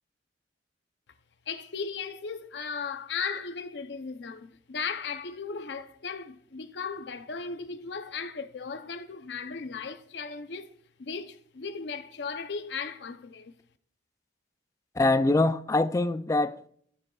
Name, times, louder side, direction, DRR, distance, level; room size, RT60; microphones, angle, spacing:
voice 1, 1.5-10.7 11.0-13.6, left 5 dB, 75° left, 0.6 m, -36 dB
voice 2, 14.9-16.7, left 2 dB, 20° left, 0.3 m, -24 dB
15.0 x 7.1 x 2.3 m
head